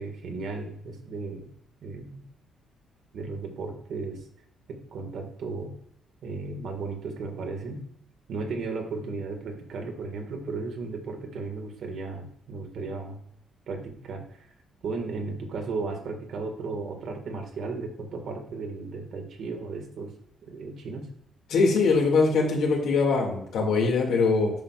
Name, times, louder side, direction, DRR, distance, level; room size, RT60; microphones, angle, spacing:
voice 1, 0.0-1.5 1.8-2.2 3.1-4.2 4.7-5.7 6.2-7.8 8.3-13.2 13.7-14.5 14.8-20.1 20.5-21.1, right 3 dB, 60° right, 3 dB, 1.6 m, -35 dB
voice 2, 21.5-24.5, left 4 dB, 80° left, -1 dB, 2.2 m, -22 dB
10.0 x 6.0 x 2.4 m, 0.70 s
cardioid pair, 145°, 0 cm